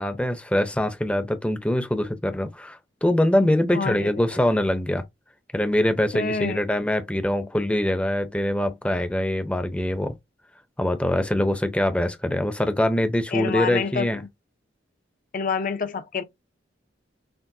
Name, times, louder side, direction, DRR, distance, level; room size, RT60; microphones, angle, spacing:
voice 1, 0.0-5.0 5.5-10.1 10.8-14.2, left 1 dB, 5° left, 0.6 m, -23 dB
voice 2, 3.7-4.1 6.1-6.6 13.3-14.2 15.3-16.2, left 5 dB, 50° left, 0.5 m, -27 dB
5.9 x 2.1 x 2.6 m
head